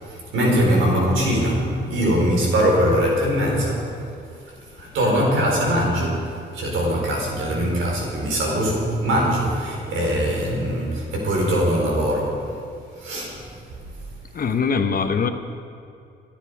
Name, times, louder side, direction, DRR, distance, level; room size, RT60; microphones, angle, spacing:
voice 1, 0.0-3.9 4.8-12.5 12.9-13.4, equal, 80° right, -2 dB, 4.7 m, -22 dB
voice 2, 14.3-15.3, left 5 dB, 45° left, 8 dB, 1.1 m, -22 dB
25.5 x 9.2 x 4.9 m, 2.5 s
cardioid pair, 90°, 20 cm